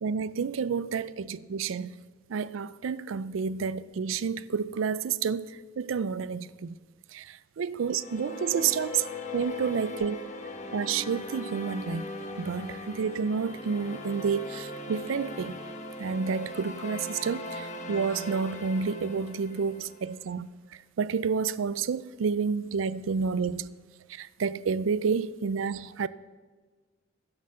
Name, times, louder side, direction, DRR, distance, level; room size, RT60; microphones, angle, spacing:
voice 1, 0.0-1.9 2.3-5.5 5.8-6.7 7.1-9.0 9.3-10.3 10.7-12.1 12.4-15.6 16.0-20.5 21.0-23.7 24.1-26.1, right 6 dB, 85° right, 0.4 m, -30 dB
sound 1, 7.8-20.1, left 1 dB, 40° left, 1.1 m, -39 dB
12.0 x 7.1 x 6.6 m
head